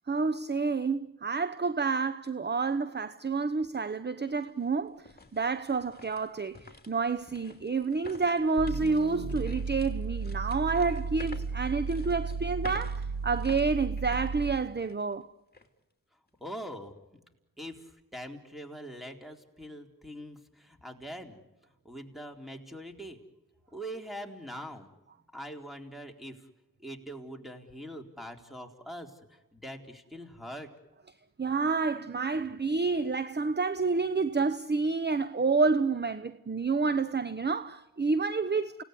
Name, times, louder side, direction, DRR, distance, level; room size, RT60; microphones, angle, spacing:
voice 1, 0.1-15.3 31.4-38.8, right 4 dB, 25° right, 0.9 m, -29 dB
sound 1, 3.6-3.7 4.2-15.1 15.5-15.7 16.3-16.6, left 3 dB, 25° left, 3.0 m, -51 dB
sound 2, 8.6-14.8, right 4 dB, 65° right, 1.4 m, -34 dB
voice 2, 16.4-16.9 17.6-21.4 21.8-23.2 23.7-24.9 25.3-26.4 26.8-30.7, equal, ahead, 4.0 m, -43 dB
29.5 x 18.0 x 9.7 m
cardioid pair, 45°, 37 cm